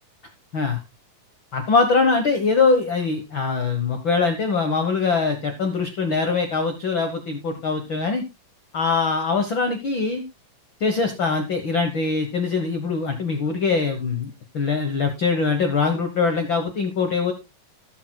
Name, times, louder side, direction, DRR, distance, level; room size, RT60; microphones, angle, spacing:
voice 1, 1.5-8.2 8.7-10.2 10.8-14.3 14.5-17.3, left 4 dB, 70° left, 5 dB, 1.1 m, -22 dB
19.5 x 6.9 x 2.3 m, 0.25 s
omnidirectional pair, 4.1 m